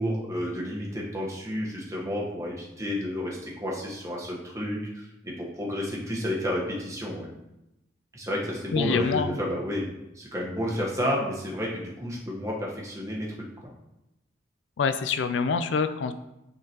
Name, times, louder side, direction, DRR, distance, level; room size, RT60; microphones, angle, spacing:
voice 1, 0.0-7.4 8.1-9.8 10.1-13.7, equal, 15° right, -3 dB, 1.0 m, -31 dB
voice 2, 8.7-9.4 14.8-16.1, left 5 dB, 75° left, 10 dB, 0.4 m, -26 dB
9.2 x 3.8 x 2.9 m, 0.90 s
head